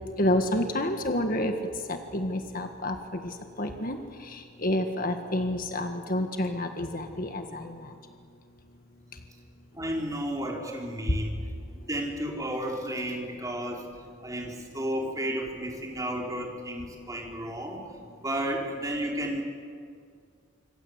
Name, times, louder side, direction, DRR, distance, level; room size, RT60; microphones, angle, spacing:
voice 1, 0.2-1.5 1.9-4.0 4.2-7.9 11.1-11.2, left 1 dB, 45° left, 5 dB, 1.7 m, -29 dB
voice 2, 9.7-11.4 11.9-13.8 14.2-17.8 18.2-19.4, right 1 dB, 15° right, 0 dB, 4.3 m, -32 dB
26.0 x 25.5 x 8.1 m, 2.2 s
head